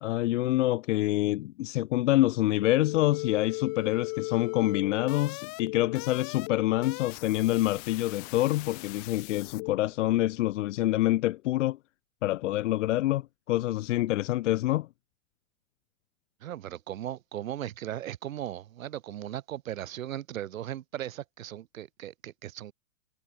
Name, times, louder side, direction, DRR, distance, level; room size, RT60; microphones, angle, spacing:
voice 1, 0.0-11.8 12.2-14.9, left 16 dB, 60° left, 1.8 m, -26 dB
sound 1, 2.6-9.7, left 39 dB, 40° left, 2.6 m, -38 dB
voice 2, 16.4-22.7, right 12 dB, 70° right, 6.2 m, -37 dB
hypercardioid pair, 130°, 42 cm